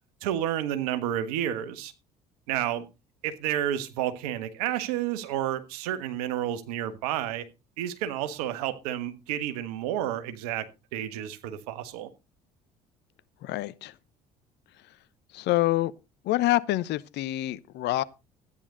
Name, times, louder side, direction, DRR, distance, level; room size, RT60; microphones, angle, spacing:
voice 1, 0.2-1.9 2.5-2.9 3.2-7.5 7.8-12.1, right 11 dB, 80° right, 1.4 m, -30 dB
voice 2, 13.4-14.0 15.3-15.9 16.2-18.0, left 16 dB, 60° left, 0.9 m, -26 dB
13.5 x 9.8 x 3.9 m
hypercardioid pair, 60°, 19 cm